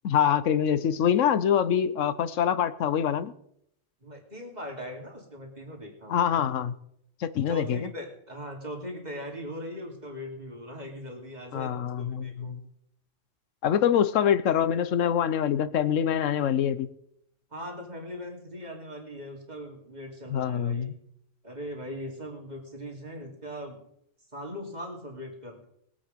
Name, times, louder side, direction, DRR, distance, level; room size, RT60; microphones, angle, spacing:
voice 1, 0.0-3.3 6.1-6.7 7.2-7.9 11.5-12.6 13.6-16.9 20.3-20.9, left 9 dB, 90° left, 14 dB, 1.1 m, -25 dB
voice 2, 4.0-6.2 7.5-12.6 17.5-20.9 21.4-23.8 24.3-25.6, equal, 35° right, 0 dB, 3.0 m, -40 dB
20.5 x 8.4 x 5.2 m, 0.73 s
omnidirectional pair, 1.3 m